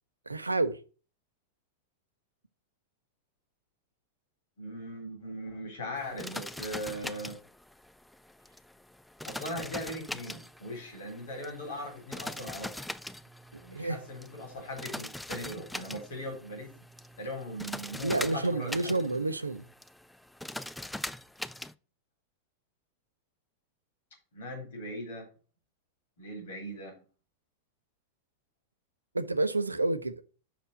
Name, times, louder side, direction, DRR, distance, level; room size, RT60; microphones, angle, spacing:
voice 1, 0.3-0.8 13.7-14.0 18.0-19.6 29.1-30.1, right 2 dB, 80° right, 0.6 m, -29 dB
voice 2, 4.6-7.4 9.2-12.9 13.6-16.7 17.2-19.2 24.3-25.3 26.2-26.9, equal, 60° left, 3.8 m, -39 dB
sound 1, 6.0-21.7, left 1 dB, 5° left, 0.3 m, -42 dB
6.0 x 4.3 x 6.3 m
figure-of-eight pair, 90°, 0 cm